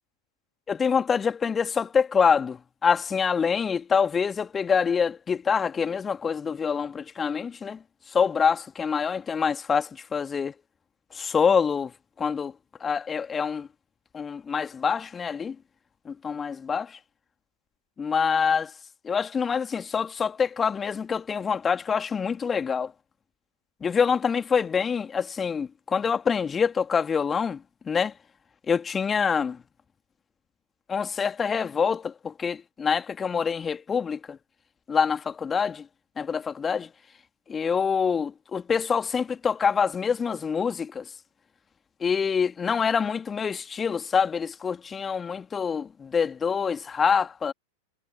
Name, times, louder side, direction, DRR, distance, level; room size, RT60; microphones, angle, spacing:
voice 1, 0.7-7.8 8.1-10.5 11.1-11.9 12.2-12.5 12.8-13.7 14.1-15.6 16.1-17.0 18.0-18.7 19.0-22.9 23.8-27.6 27.9-28.1 28.7-29.6 30.9-34.4 34.9-35.9 36.2-36.9 37.5-41.1 42.0-47.5, left 6 dB, 20° left, 2.5 m, -26 dB
figure-of-eight pair, 90°, 0 cm